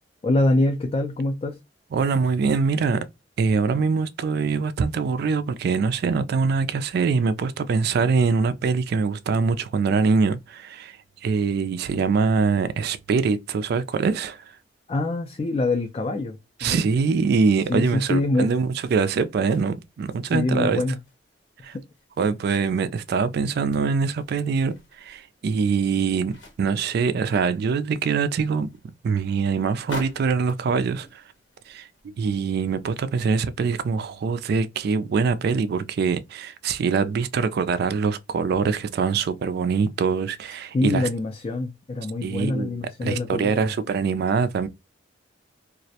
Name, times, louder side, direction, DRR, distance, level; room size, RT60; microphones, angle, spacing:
voice 1, 0.2-1.6 14.9-16.8 17.7-18.5 20.3-21.0 21.6-21.8 38.6-38.7 40.7-43.7, left 2 dB, 30° left, 0.3 m, -25 dB
voice 2, 1.9-3.1 3.4-11.0 11.2-14.4 16.6-20.8 21.6-21.8 22.2-28.7 29.0-31.2 31.7-31.9 32.2-41.1 42.2-44.7, right 5 dB, 55° right, 0.3 m, -23 dB
sound 1, 19.1-20.5 20.9-23.5 23.8-26.9 27.3-32.9 33.4-33.5, left 1 dB, 80° left, 1.0 m, -46 dB
2.4 x 2.0 x 2.7 m
head